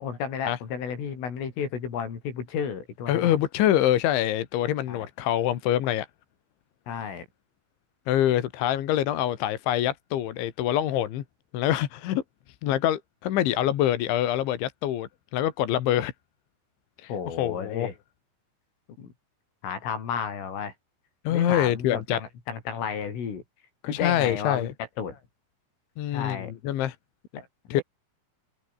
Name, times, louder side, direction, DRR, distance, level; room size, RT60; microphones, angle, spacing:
voice 1, 0.0-3.3 4.9-5.1 6.9-7.3 17.1-17.9 19.0-19.1 19.6-20.7 21.3-23.4 23.9-24.7 25.0-25.2 26.1-26.5 27.3-27.8, left 7 dB, 90° left, 7.7 m, -32 dB
voice 2, 3.1-6.1 8.1-11.2 11.5-12.2 12.6-16.1 17.0-17.1 17.4-17.9 21.3-22.2 23.8-24.7 26.0-27.0 27.7-27.8, left 12 dB, 75° left, 4.2 m, -25 dB
omnidirectional pair, 5.6 m